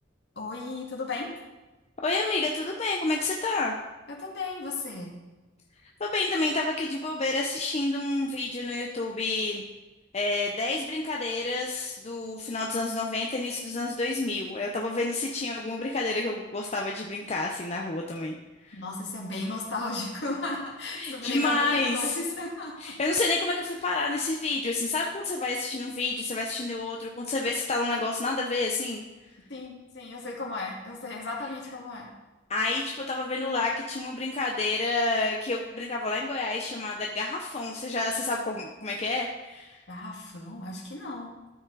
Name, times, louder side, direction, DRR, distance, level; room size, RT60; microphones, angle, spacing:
voice 1, 0.4-1.3 4.1-5.2 18.7-23.0 29.5-32.1 39.9-41.3, left 3 dB, 65° left, -2 dB, 2.1 m, -35 dB
voice 2, 2.0-3.8 6.0-9.6 10.1-18.4 18.6-18.8 21.0-22.2 22.8-29.0 32.5-39.8, left 2 dB, 35° left, 0 dB, 0.7 m, -29 dB
13.0 x 4.9 x 4.0 m, 1.1 s
head